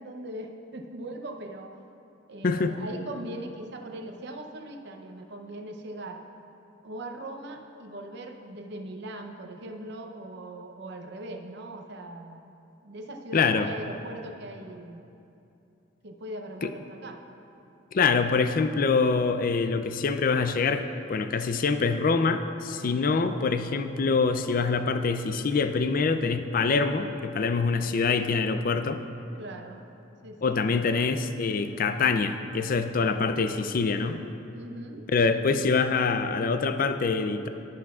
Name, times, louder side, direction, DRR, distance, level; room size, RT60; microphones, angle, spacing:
voice 1, 0.0-1.7 2.3-6.2 6.8-12.5 12.8-15.0 16.0-17.2 29.4-29.8 30.2-30.9 34.5-35.7, right 1 dB, 60° right, 4 dB, 0.7 m, -40 dB
voice 2, 2.4-2.7 13.3-13.7 16.6-16.7 17.9-29.0 30.4-34.2 35.1-37.5, left 4 dB, 45° left, 9 dB, 0.4 m, -25 dB
12.0 x 11.5 x 2.4 m, 2.8 s
head